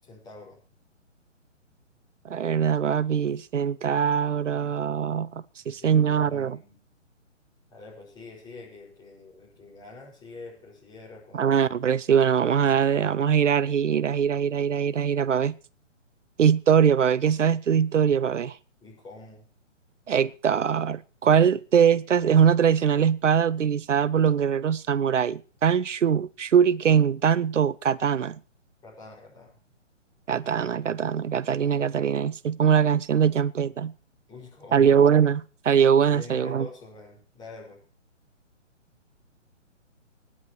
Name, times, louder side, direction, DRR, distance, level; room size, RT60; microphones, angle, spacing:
voice 1, 0.0-0.6 5.6-6.8 7.7-11.6 18.8-19.5 28.8-29.5 34.3-35.0 36.1-37.8, left 3 dB, 10° left, 6.0 m, -45 dB
voice 2, 2.2-6.6 11.3-15.5 16.4-18.6 20.1-28.4 30.3-33.9 34.7-36.7, right 7 dB, 75° right, 0.6 m, -22 dB
26.5 x 9.8 x 3.2 m
figure-of-eight pair, 135°, 37 cm